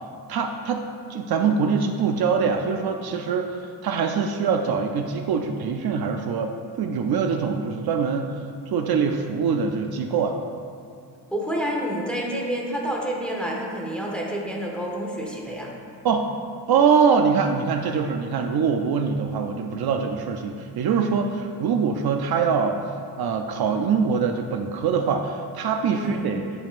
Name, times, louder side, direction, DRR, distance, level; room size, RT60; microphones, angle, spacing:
voice 1, 0.3-10.4 16.0-16.3 16.7-22.8 23.2-26.4, right 6 dB, 60° right, 4 dB, 0.5 m, -23 dB
voice 2, 11.3-15.7 25.9-26.3, equal, ahead, -3 dB, 0.9 m, -28 dB
9.9 x 5.4 x 2.5 m, 2.3 s
cardioid pair, 140°, 42 cm